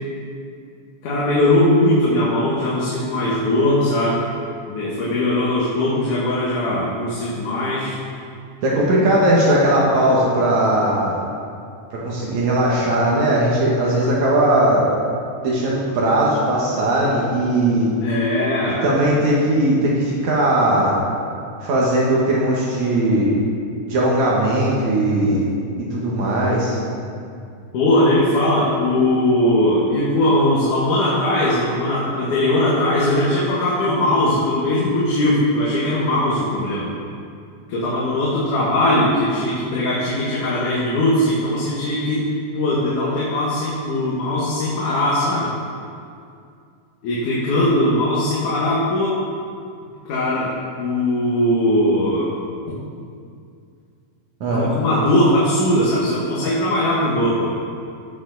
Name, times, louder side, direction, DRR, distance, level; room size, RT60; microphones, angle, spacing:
voice 1, 1.0-4.3 4.7-8.0 18.0-18.8 27.7-36.9 37.7-42.2 42.5-45.5 47.0-49.2 50.1-50.5 50.8-52.3 54.5-57.6, left 1 dB, 75° left, -7 dB, 3.0 m, -19 dB
voice 2, 8.6-11.2 11.9-14.9 15.4-17.9 18.8-21.0 21.6-23.3 23.9-25.5 25.9-26.8 54.4-54.7, right 1 dB, 70° right, -5 dB, 2.7 m, -18 dB
15.5 x 7.1 x 4.0 m, 2.3 s
omnidirectional pair, 3.5 m